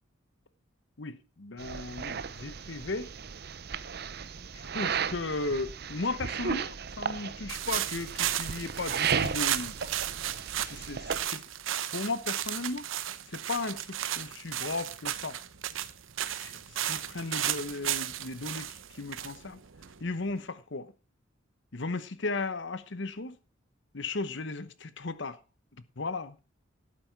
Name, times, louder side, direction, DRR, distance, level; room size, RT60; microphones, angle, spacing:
voice 1, 1.0-3.1 4.7-9.9 10.6-11.4 11.9-12.9 13.3-15.4 16.2-16.6 16.9-19.6 20.0-20.9 21.7-23.4 23.9-25.4 26.0-26.4, left 3 dB, 60° left, 1.0 m, -36 dB
sound 1, 1.6-11.3, right 6 dB, 50° right, 0.7 m, -35 dB
sound 2, 7.5-20.3, right 11 dB, 80° right, 0.8 m, -34 dB
12.0 x 8.7 x 4.6 m
head